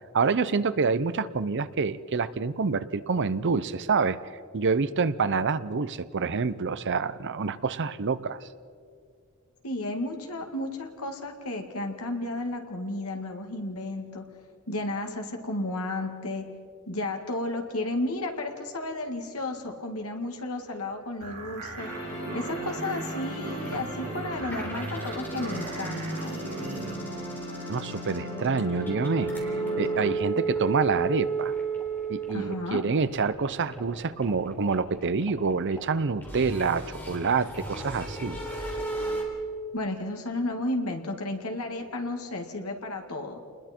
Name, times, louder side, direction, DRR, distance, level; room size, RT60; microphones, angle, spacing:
voice 1, 0.1-4.2 4.5-8.4 27.7-31.5 32.1-38.4, right 4 dB, 55° right, 15 dB, 0.6 m, -27 dB
voice 2, 9.6-14.2 14.7-16.5 16.9-21.9 22.3-26.4 32.3-32.8 39.7-43.4, left 2 dB, 75° left, 3 dB, 2.2 m, -33 dB
sound 1, 21.2-27.0, right 2 dB, 85° right, 3.8 m, -37 dB
sound 2, 21.8-30.1, equal, 30° left, 5.6 m, -37 dB
sound 3, 23.6-23.8 24.2-39.2, right 4 dB, 10° left, 3.7 m, -34 dB
29.0 x 20.5 x 4.5 m, 2.2 s
head